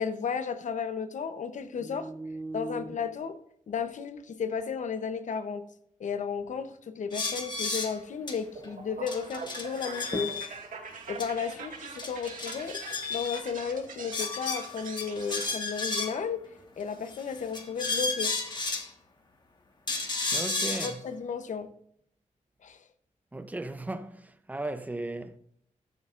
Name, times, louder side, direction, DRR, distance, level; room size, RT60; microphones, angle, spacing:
voice 1, 0.0-2.1 2.5-3.4 3.7-5.7 6.0-10.3 11.1-12.8 13.1-16.4 16.8-18.3 20.7-21.7 22.6-22.8, left 6 dB, 65° left, 0.9 m, -33 dB
voice 2, 1.8-2.8 10.1-10.3 20.3-21.0 23.3-24.2 24.5-25.3, right 2 dB, 10° right, 0.7 m, -36 dB
sound 1, 7.1-7.9 8.3-8.4 8.6-8.7 9.1-10.5 11.2-11.3 11.6-11.7 12.0-13.4 14.1-16.3 17.1-18.9 19.9-20.9, left 3 dB, 35° left, 1.5 m, -33 dB
sound 2, 8.6-15.5, right 5 dB, 85° right, 2.0 m, -43 dB
14.0 x 12.0 x 2.5 m
wide cardioid pair, 145°, 13 cm